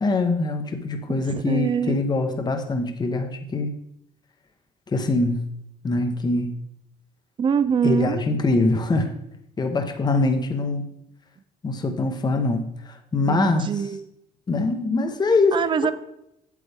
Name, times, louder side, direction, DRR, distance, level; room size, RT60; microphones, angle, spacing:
voice 1, 0.0-3.7 4.9-5.5 5.8-6.5 7.8-9.1 9.6-10.8 11.6-13.7 14.5-15.6, left 3 dB, 25° left, 5 dB, 0.9 m, -23 dB
voice 2, 1.3-2.0 7.4-8.2 13.3-14.1 15.5-15.9, right 7 dB, 30° right, 14 dB, 0.4 m, -24 dB
8.4 x 7.6 x 3.4 m, 0.80 s
cardioid pair, 110°, 17 cm